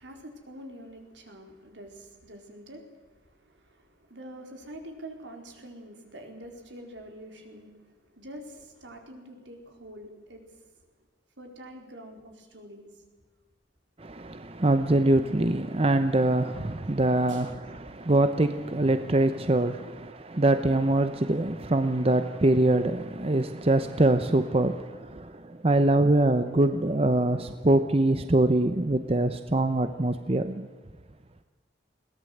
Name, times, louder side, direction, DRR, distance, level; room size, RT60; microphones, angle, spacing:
voice 1, 0.0-10.8 11.4-12.9 17.3-17.5 19.8-20.1, right 1 dB, 75° right, 4.3 m, -46 dB
voice 2, 14.0-30.7, right 2 dB, 30° right, 0.8 m, -24 dB
22.0 x 17.5 x 8.0 m
head